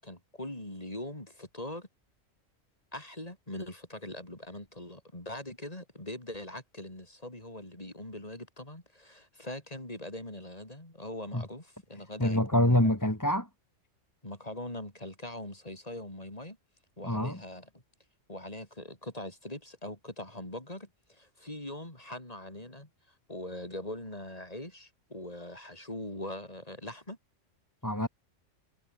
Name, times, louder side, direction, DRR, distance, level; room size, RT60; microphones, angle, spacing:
voice 1, 0.0-1.9 2.9-12.9 14.2-16.6 17.0-17.8 18.3-22.9 23.3-27.2, left 1 dB, 30° left, 4.3 m, -42 dB
voice 2, 12.2-13.5 17.0-17.4 27.8-28.1, left 1 dB, 15° left, 2.9 m, -26 dB
omnidirectional pair, 1.3 m